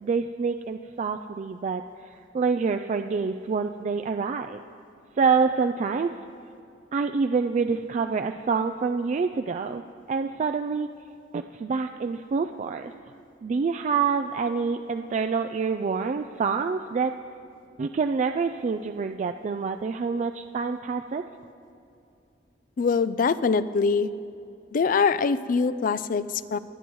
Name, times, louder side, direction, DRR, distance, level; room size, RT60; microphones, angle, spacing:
voice 1, 0.0-4.6 5.2-6.1 6.9-9.8 10.1-10.9 11.3-12.9 13.4-17.1 17.8-21.2, right 5 dB, 40° right, 7 dB, 0.3 m, -27 dB
voice 2, 22.8-24.1 24.7-26.6, left 5 dB, 50° left, 15 dB, 0.4 m, -23 dB
25.0 x 9.6 x 3.1 m, 2.5 s
head